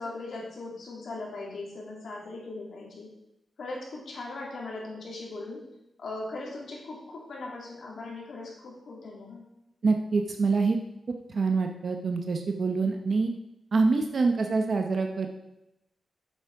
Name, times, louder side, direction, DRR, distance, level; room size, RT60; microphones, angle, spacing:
voice 1, 0.0-3.1 3.6-5.6 6.0-9.4, left 2 dB, 70° left, -3 dB, 3.0 m, -39 dB
voice 2, 9.8-10.8 11.3-13.3 13.7-15.3, right 4 dB, 50° right, 4 dB, 0.8 m, -25 dB
9.0 x 7.1 x 4.8 m, 0.87 s
wide cardioid pair, 105°, 0 cm